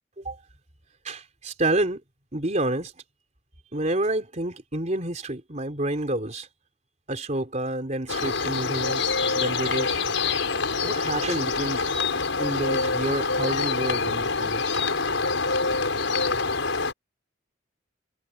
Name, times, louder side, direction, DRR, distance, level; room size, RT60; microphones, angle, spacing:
voice 1, 1.0-2.0 2.3-2.9 3.7-6.5 7.1-10.0 10.8-11.9 12.4-14.6, right 1 dB, 40° right, 3.7 m, -29 dB
sound 1, 8.1-16.9, left 4 dB, 85° left, 5.5 m, -26 dB
head